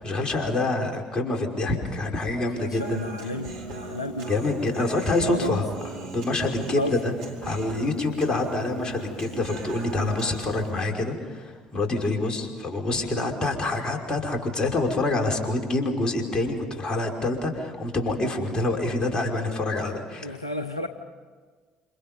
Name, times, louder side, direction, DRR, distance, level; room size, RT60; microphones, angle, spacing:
voice 1, 0.0-3.1 4.3-7.1 7.4-20.4, left 2 dB, 30° left, 2 dB, 5.6 m, -26 dB
voice 2, 2.6-4.3 5.2-5.6 6.6-7.0 13.2-13.3 20.2-20.9, left 1 dB, 90° left, 8 dB, 0.8 m, -32 dB
Human voice, 2.7-10.7, right 4 dB, 70° right, 4.7 m, -39 dB
29.5 x 27.5 x 5.5 m, 1.5 s
figure-of-eight pair, 50°, 3 cm